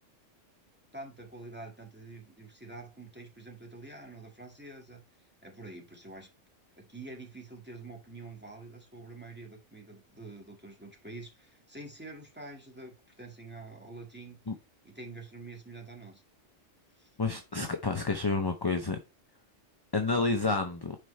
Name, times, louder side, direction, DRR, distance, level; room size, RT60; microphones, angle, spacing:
voice 1, 0.9-5.0 5.4-6.3 6.8-14.4 14.8-16.2 16.9-17.1, right 2 dB, 10° right, 1.9 m, -47 dB
voice 2, 17.2-19.0 19.9-21.0, left 3 dB, 25° left, 0.5 m, -29 dB
9.2 x 4.9 x 3.2 m
omnidirectional pair, 1.3 m